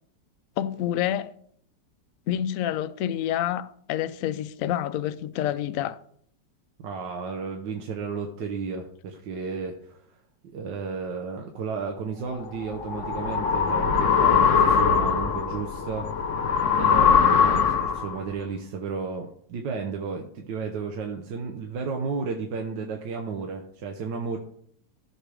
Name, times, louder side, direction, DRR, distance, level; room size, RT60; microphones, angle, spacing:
voice 1, 0.6-1.3 2.3-6.0, left 11 dB, 75° left, 0.8 m, -28 dB
voice 2, 6.8-10.0 10.5-16.3 16.8-24.4, right 5 dB, 85° right, 1.6 m, -33 dB
sound 1, 12.4-18.2, left 6 dB, 55° left, 1.0 m, -21 dB
15.5 x 6.2 x 3.4 m
omnidirectional pair, 1.9 m